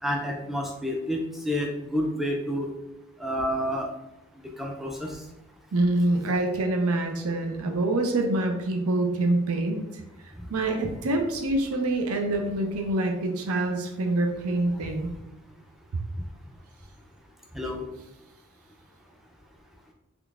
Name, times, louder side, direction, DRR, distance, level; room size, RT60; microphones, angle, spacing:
voice 1, 0.0-2.7 3.2-3.9 4.6-5.2 10.4-10.5 17.5-17.9, equal, ahead, 0 dB, 0.4 m, -29 dB
voice 2, 5.7-15.1, right 2 dB, 75° right, 3 dB, 0.5 m, -26 dB
3.7 x 3.3 x 2.4 m, 0.89 s
head